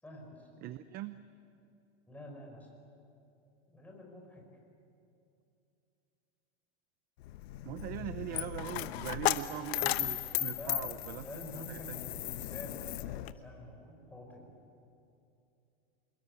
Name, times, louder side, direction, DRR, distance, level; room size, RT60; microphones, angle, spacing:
voice 1, 0.0-0.6 2.1-2.7 3.7-4.4 7.8-8.2 10.3-14.5, left 1 dB, 5° left, 0 dB, 5.7 m, -48 dB
voice 2, 0.6-1.2 7.6-11.4 11.7-12.0, right 13 dB, 25° right, 13 dB, 0.6 m, -41 dB
Coin (dropping), 7.2-13.3, left 15 dB, 60° left, 1.1 m, -36 dB
26.5 x 21.0 x 9.8 m, 2.6 s
supercardioid pair, 150°, 35 cm